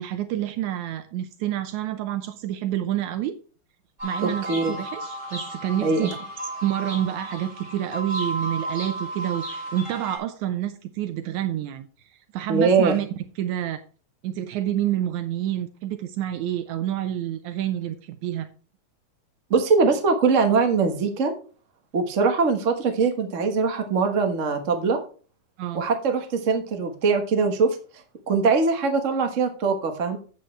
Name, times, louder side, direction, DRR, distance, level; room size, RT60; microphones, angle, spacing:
voice 1, 0.0-3.4 4.0-6.2 6.6-11.9 12.3-13.1 13.4-13.8 14.2-18.5 25.6-25.9, right 12 dB, 80° right, 9 dB, 2.1 m, -28 dB
sound 1, 4.0-10.2, right 1 dB, 20° right, 5.4 m, -33 dB
voice 2, 4.2-4.7 5.8-6.1 12.5-12.9 19.5-21.3 21.9-25.0 25.7-27.8 28.3-30.2, right 4 dB, 45° right, 5 dB, 1.0 m, -22 dB
9.6 x 8.5 x 3.2 m, 0.37 s
omnidirectional pair, 3.4 m